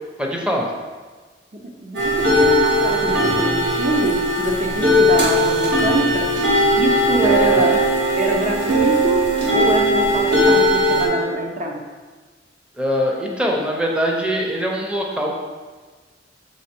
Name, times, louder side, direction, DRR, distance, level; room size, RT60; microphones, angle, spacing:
voice 1, 0.2-0.7 7.4-7.8 12.8-15.3, equal, 5° right, -1 dB, 0.6 m, -23 dB
voice 2, 1.5-6.3 6.8-7.8 8.2-9.3 9.5-11.8, right 1 dB, 45° right, 1 dB, 0.6 m, -24 dB
sound 1, 1.9-11.1, equal, 75° right, 1.6 m, -18 dB
6.3 x 3.7 x 4.3 m, 1.4 s
head